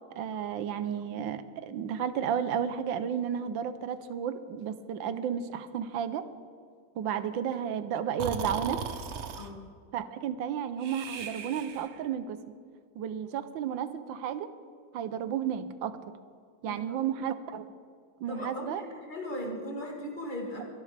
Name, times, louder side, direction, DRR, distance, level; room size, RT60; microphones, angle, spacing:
voice 1, 0.2-6.2 7.0-8.8 9.9-12.4 13.0-14.5 14.9-15.9 16.6-17.7 18.2-18.8, right 8 dB, 90° right, 12 dB, 1.5 m, -32 dB
Breathing, 8.2-9.5 10.8-12.1, right 6 dB, 60° right, 0.7 m, -37 dB
voice 2, 16.7-17.0 18.3-20.6, equal, 25° left, -1 dB, 2.5 m, -38 dB
25.5 x 11.0 x 3.4 m, 2.1 s
omnidirectional pair, 2.0 m